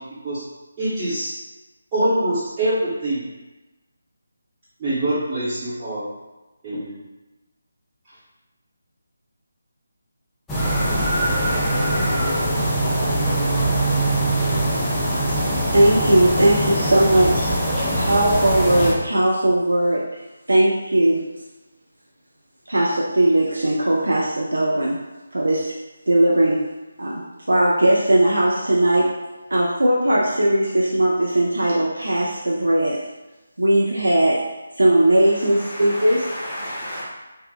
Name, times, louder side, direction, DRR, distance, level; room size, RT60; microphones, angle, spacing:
voice 1, 0.8-1.4 1.9-3.2 4.8-6.1 6.6-7.0, right 1 dB, 20° right, -15 dB, 0.8 m, -24 dB
sound 1, 10.5-18.9, right 1 dB, 5° left, 0.4 m, -22 dB
voice 2, 15.7-17.5 18.0-20.0 20.5-21.2 22.7-25.0 25.3-25.7 26.1-26.6 27.0-27.2 27.5-29.1 29.5-33.0 33.6-34.4 34.8-36.3, right 1 dB, 75° right, -5 dB, 0.4 m, -18 dB
voice 3, 35.5-37.0, equal, 25° left, -9 dB, 0.8 m, -32 dB
2.6 x 2.0 x 2.3 m, 1.1 s
figure-of-eight pair, 155°, 0 cm